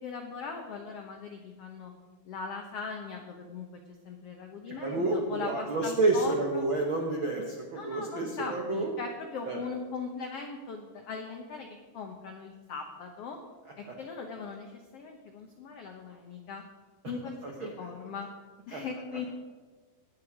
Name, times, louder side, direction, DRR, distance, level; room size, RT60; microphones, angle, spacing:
voice 1, 0.0-1.9 2.3-3.7 4.0-6.7 7.8-13.4 13.8-16.6 17.0-18.3 18.7-19.3, left 5 dB, 90° left, 4 dB, 1.3 m, -39 dB
voice 2, 4.7-8.9 9.5-9.6 13.9-14.0 17.4-17.7 18.7-18.8, right 2 dB, 70° right, 0 dB, 1.2 m, -29 dB
19.5 x 7.8 x 4.9 m, 1.4 s
omnidirectional pair, 4.1 m